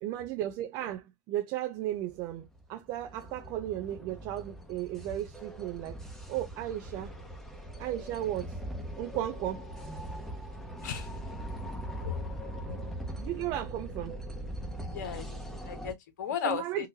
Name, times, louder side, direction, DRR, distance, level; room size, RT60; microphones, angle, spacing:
voice 1, 0.0-6.0 6.3-7.1 7.8-8.6 9.0-9.7 13.2-14.2 15.5-15.6 16.4-16.9, right 13 dB, 50° right, 0.6 m, -35 dB
sound 1, 2.0-15.9, right 1 dB, 5° left, 1.2 m, -41 dB
voice 2, 14.9-16.9, left 8 dB, 80° left, 0.9 m, -35 dB
3.9 x 2.6 x 2.7 m
hypercardioid pair, 105°, 10 cm